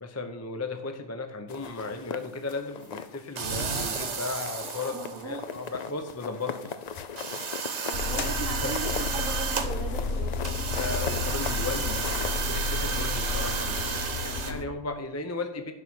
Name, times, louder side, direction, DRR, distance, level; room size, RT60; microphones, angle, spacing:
voice 1, 0.0-6.7 8.0-8.3 8.6-8.7 10.7-15.7, left 3 dB, 20° left, 7 dB, 0.4 m, -36 dB
sound 1, 1.5-3.2 3.6-4.2 4.4-12.4, left 6 dB, 85° left, 0.3 m, -39 dB
sound 2, 3.4-5.5 6.3-6.4 6.7-6.8 7.2-9.7 10.4-14.5, right 5 dB, 55° right, 1.3 m, -32 dB
voice 2, 4.8-5.5 7.8-10.3, right 5 dB, 70° right, 4 dB, 1.1 m, -38 dB
sound 3, 7.9-14.6, left 4 dB, 50° left, 0.9 m, -32 dB
11.0 x 5.4 x 6.2 m, 0.93 s
omnidirectional pair, 1.5 m